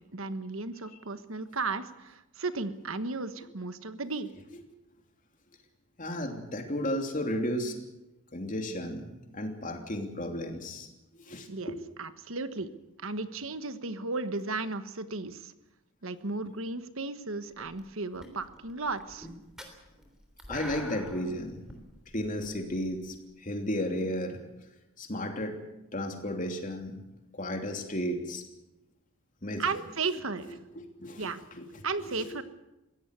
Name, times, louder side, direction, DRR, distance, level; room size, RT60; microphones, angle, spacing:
voice 1, 0.0-4.3 11.5-12.7 13.0-15.5 16.0-19.3 29.6-30.6 31.2-31.4 31.8-32.4, right 3 dB, 65° right, 11 dB, 1.3 m, -35 dB
voice 2, 6.0-7.8 8.3-9.1 9.3-10.9 11.1-11.8 20.5-21.6 22.1-24.4 25.0-25.6 25.9-27.0 27.3-28.4 29.4-29.7 30.7-31.3 31.6-32.4, left 1 dB, 35° left, 4 dB, 3.0 m, -34 dB
sound 1, 17.6-17.9 18.2-23.2, equal, 5° right, 3.4 m, -45 dB
22.5 x 17.0 x 8.2 m, 0.96 s
head